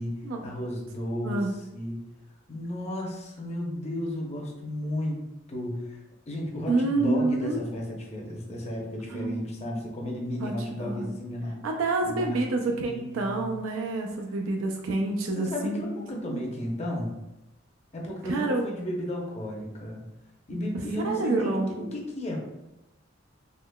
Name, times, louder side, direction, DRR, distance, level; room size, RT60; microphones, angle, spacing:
voice 1, 0.0-2.0 2.5-5.2 5.5-11.6 12.0-13.5 15.4-17.2 17.9-20.0 20.5-22.4, left 1 dB, 35° left, -2 dB, 0.7 m, -34 dB
voice 2, 1.2-1.6 6.7-7.6 9.0-9.4 10.4-11.2 11.6-16.4 18.2-18.6 21.0-21.7, right 2 dB, 75° right, 2 dB, 0.4 m, -28 dB
3.7 x 3.0 x 2.2 m, 0.95 s
head